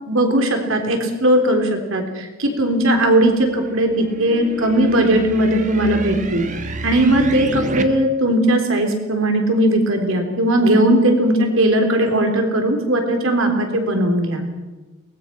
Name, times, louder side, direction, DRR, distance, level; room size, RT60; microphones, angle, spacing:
voice 1, 0.1-6.5 6.8-14.4, right 1 dB, 65° right, 4 dB, 3.7 m, -18 dB
sound 1, 2.9-7.8, right 2 dB, 35° right, 1.4 m, -30 dB
23.0 x 19.5 x 5.9 m, 1.2 s
head